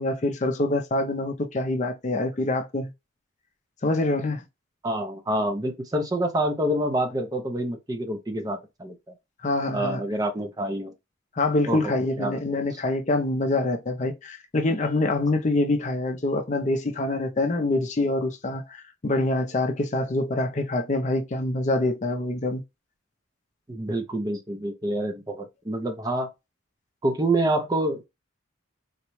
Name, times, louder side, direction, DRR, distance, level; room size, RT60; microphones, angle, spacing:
voice 1, 0.0-2.9 3.8-4.4 9.4-10.0 11.4-22.6, left 2 dB, 35° left, 0.5 m, -25 dB
voice 2, 4.8-8.9 9.7-10.9 11.7-11.9 12.2-12.4 12.7-12.8 23.7-26.3 27.0-28.1, right 1 dB, 20° right, 0.5 m, -27 dB
3.9 x 2.2 x 3.0 m
head